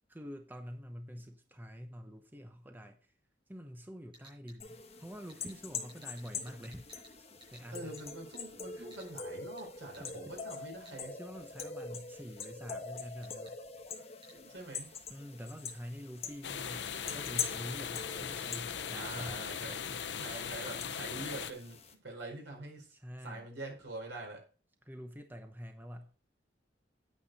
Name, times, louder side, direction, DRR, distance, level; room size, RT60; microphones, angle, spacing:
voice 1, 0.1-3.0 3.5-7.9 8.7-8.9 10.0-10.3 11.2-13.6 15.1-19.4 19.9-20.0 22.9-23.5 24.8-26.1, equal, 10° right, 5 dB, 0.9 m, -46 dB
sound 1, 4.1-4.6 5.3-5.6 5.9-7.1 7.4-7.6 8.0-8.1 8.3-8.4 8.9-9.1 9.6-9.7 9.9-10.1 10.9-11.0 11.6-11.7 12.4-12.5 13.2-13.6 14.2-14.4 15.7-15.8 16.7-17.0 17.6-18.6 19.1-19.2 19.5-19.8 20.0-20.3, right 1 dB, 30° right, 6.5 m, -57 dB
sound 2, 4.6-21.9, left 5 dB, 35° left, 1.4 m, -44 dB
voice 2, 7.7-11.2 14.3-15.0 19.0-19.8 20.1-22.9 23.2-24.4, right 2 dB, 80° right, 1 dB, 4.7 m, -45 dB
sound 3, 16.4-21.5, left 7 dB, 70° left, 0.7 m, -39 dB
9.4 x 8.8 x 4.1 m, 0.37 s
head